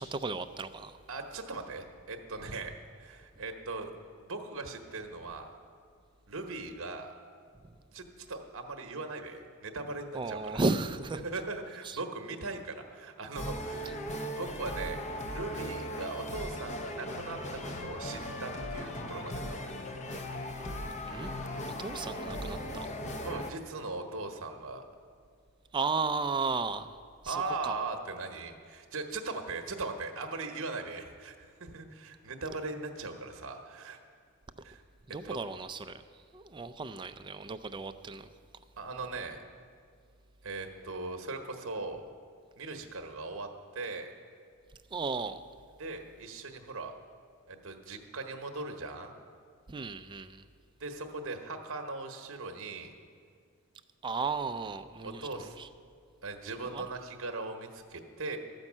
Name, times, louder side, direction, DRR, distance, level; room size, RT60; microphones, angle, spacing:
voice 1, 0.0-1.0 10.1-11.2 11.8-12.0 13.8-13.9 21.1-21.5 21.8-23.0 25.7-27.8 35.1-38.3 44.9-45.4 49.7-50.5 54.0-55.7 56.6-56.8, right 4 dB, 20° right, 10 dB, 0.3 m, -35 dB
voice 2, 1.1-2.7 3.0-3.9 4.2-5.5 6.3-7.1 7.9-10.6 11.2-14.0 14.2-19.8 23.2-24.8 27.3-34.0 34.6-34.8 35.2-35.4 38.8-39.4 40.4-42.0 42.6-44.1 45.8-46.9 47.5-49.1 50.8-52.9 55.0-55.5 56.2-58.4, right 3 dB, 60° right, 5 dB, 0.9 m, -39 dB
sound 1, 13.3-23.5, left 1 dB, 30° left, 0.7 m, -38 dB
13.5 x 5.3 x 7.3 m, 2.1 s
head